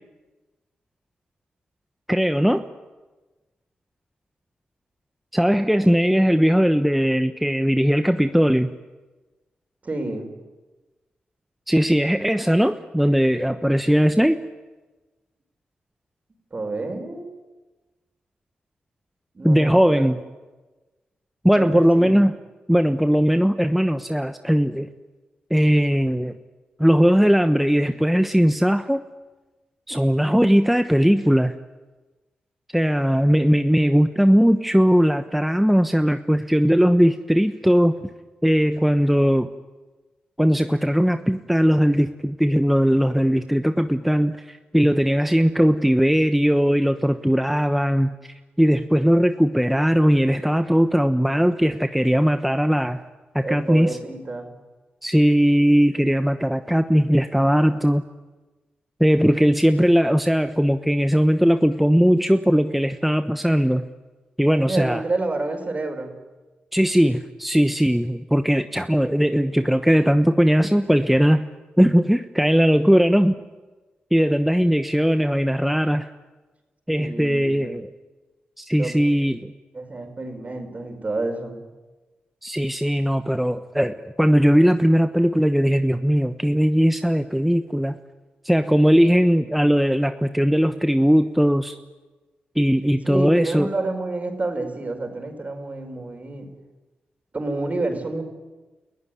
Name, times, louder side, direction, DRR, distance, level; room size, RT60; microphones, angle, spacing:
voice 1, 2.1-2.6 5.3-8.7 11.7-14.4 19.4-20.2 21.4-22.4 22.7-24.9 25.5-26.3 26.8-29.0 29.9-31.5 32.7-38.1 38.4-39.5 40.4-48.1 48.6-53.0 53.3-54.0 55.0-58.0 59.0-63.8 64.4-65.0 66.7-71.5 71.8-73.4 74.1-76.1 76.9-77.9 78.6-79.5 82.4-87.9 88.4-91.8 92.6-93.7, equal, 5° right, 8 dB, 1.1 m, -19 dB
voice 2, 9.8-10.3 16.5-17.4 19.3-20.2 21.6-22.2 53.4-54.5 64.6-66.1 76.9-77.8 78.8-79.0 79.7-81.6 93.0-96.5 97.3-98.2, right 2 dB, 40° right, 5 dB, 5.5 m, -29 dB
29.5 x 15.0 x 9.5 m, 1.2 s
supercardioid pair, 45°, 4 cm